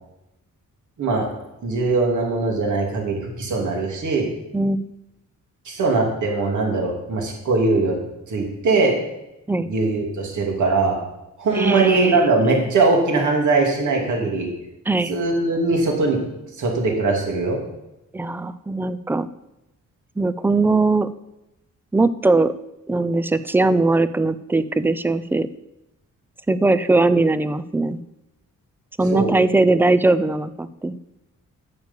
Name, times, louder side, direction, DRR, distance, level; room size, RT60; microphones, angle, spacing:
voice 1, 1.6-4.2 5.6-8.0 8.3-8.9 9.6-11.0 11.4-14.5 15.1-16.2 16.6-17.6 29.1-29.3, right 3 dB, 70° right, 0 dB, 2.9 m, -21 dB
voice 2, 11.5-12.2 14.9-15.1 18.1-19.3 20.2-21.1 21.9-22.5 22.9-25.5 26.5-28.0 29.0-31.0, right 2 dB, 5° right, 14 dB, 0.3 m, -20 dB
9.7 x 6.7 x 8.2 m, 0.91 s
wide cardioid pair, 150°, 31 cm